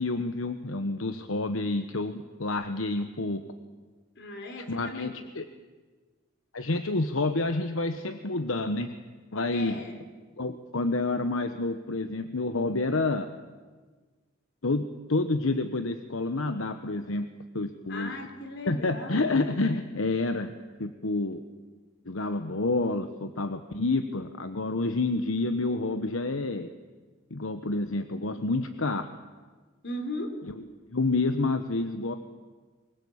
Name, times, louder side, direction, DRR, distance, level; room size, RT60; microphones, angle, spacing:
voice 1, 0.0-3.4 4.7-5.4 6.5-8.9 9.3-9.8 10.4-13.3 14.6-17.3 17.5-18.1 18.7-20.5 20.8-21.4 22.1-26.7 27.3-29.1 30.9-32.2, left 2 dB, 80° left, 9 dB, 1.1 m, -28 dB
voice 2, 4.2-5.2 9.5-10.0 17.9-19.5 29.8-30.4, left 1 dB, 60° left, 5 dB, 3.7 m, -37 dB
24.0 x 20.0 x 8.7 m, 1.4 s
head